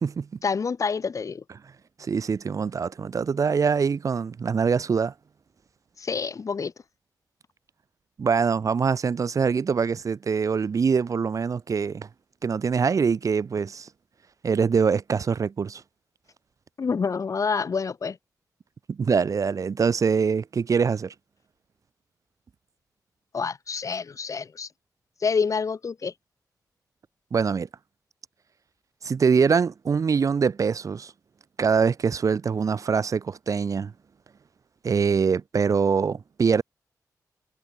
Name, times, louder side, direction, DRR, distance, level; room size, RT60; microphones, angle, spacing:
voice 1, 0.4-1.4 6.0-6.7 16.8-18.2 23.3-24.7 25.2-26.1, left 5 dB, 50° left, 1.8 m, -27 dB
voice 2, 2.0-5.1 8.2-12.1 12.4-13.9 14.4-15.8 18.9-21.1 27.3-27.7 29.0-31.1 31.6-33.9 34.8-36.6, right 5 dB, 55° right, 0.8 m, -24 dB
wide cardioid pair, 120°, 7 cm